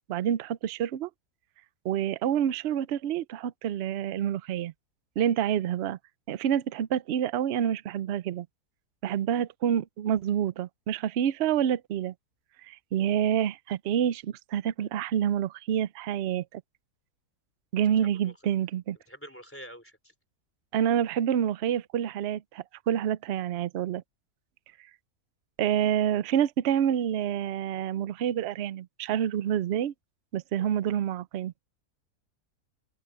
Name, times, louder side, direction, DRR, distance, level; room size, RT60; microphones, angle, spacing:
voice 1, 0.1-1.1 1.8-4.7 5.2-6.0 6.3-8.5 9.0-12.1 12.7-16.6 17.7-19.0 20.7-24.0 25.6-29.9 30.3-31.5, right 9 dB, 60° right, 0.7 m, -28 dB
voice 2, 19.1-20.0, equal, 10° left, 3.6 m, -45 dB
open air
omnidirectional pair, 1.7 m